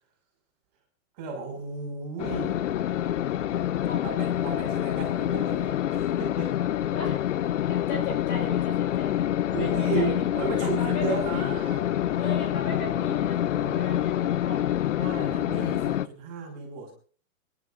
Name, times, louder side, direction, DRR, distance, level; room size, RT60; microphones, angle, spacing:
voice 1, 1.2-2.6 4.0-6.5 9.5-11.8 13.1-13.9 14.9-16.9, right 5 dB, 25° right, 0 dB, 5.7 m, -35 dB
sound 1, 2.2-16.1, left 12 dB, 60° left, 0.7 m, -26 dB
voice 2, 3.9-4.4 6.9-7.3 7.6-9.3 9.6-10.3 10.6-11.6 12.1-14.6, left 2 dB, 25° left, 3 dB, 4.6 m, -37 dB
29.5 x 11.5 x 2.6 m, 0.41 s
hypercardioid pair, 175°, 41 cm